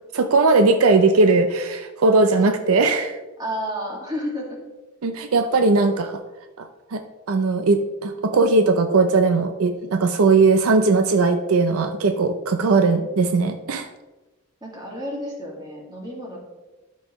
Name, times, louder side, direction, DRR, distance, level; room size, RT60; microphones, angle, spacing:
voice 1, 0.1-3.2 5.0-6.2 6.6-7.0 7.3-13.9, right 3 dB, 75° right, 8 dB, 0.5 m, -19 dB
voice 2, 3.4-4.6 5.4-6.1 14.6-16.4, equal, 20° right, -2 dB, 2.0 m, -31 dB
12.5 x 5.4 x 3.1 m, 1.2 s
head